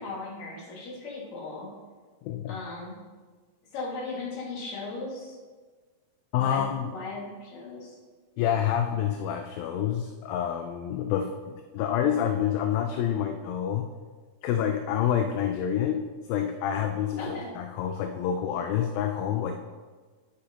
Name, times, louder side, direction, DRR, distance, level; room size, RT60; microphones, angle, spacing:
voice 1, 0.0-1.7 2.5-3.0 3.7-5.4 6.4-8.0 17.2-17.5, left 3 dB, 50° left, -4 dB, 2.9 m, -37 dB
voice 2, 2.2-2.6 6.3-6.9 8.4-13.8 14.4-16.0 16.3-19.5, left 9 dB, 80° left, 5 dB, 2.2 m, -28 dB
10.0 x 8.5 x 2.9 m, 1.4 s
omnidirectional pair, 4.5 m